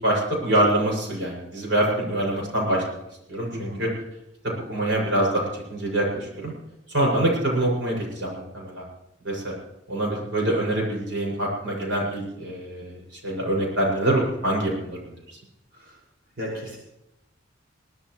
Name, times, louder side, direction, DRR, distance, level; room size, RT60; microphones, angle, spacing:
voice 1, 0.0-3.0 3.3-3.9 4.4-6.5 6.9-8.8 9.2-9.5 9.9-15.2, right 1 dB, 85° right, -2 dB, 6.7 m, -25 dB
voice 2, 3.5-3.8 15.7-16.0 16.4-16.8, equal, 55° right, -3 dB, 6.0 m, -34 dB
22.5 x 17.5 x 3.2 m, 0.87 s
head